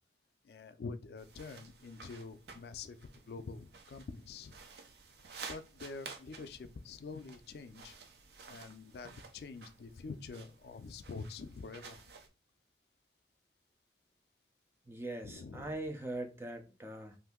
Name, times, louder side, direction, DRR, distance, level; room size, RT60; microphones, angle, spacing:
voice 1, 0.5-3.0 3.3-4.5 5.5-7.9 8.5-12.0 15.2-15.7, left 4 dB, 65° left, 0.4 m, -46 dB
sound 1, 1.2-12.3, right 5 dB, 65° right, 0.5 m, -53 dB
voice 2, 14.9-17.2, right 1 dB, 15° right, 0.5 m, -41 dB
2.7 x 2.5 x 3.6 m
head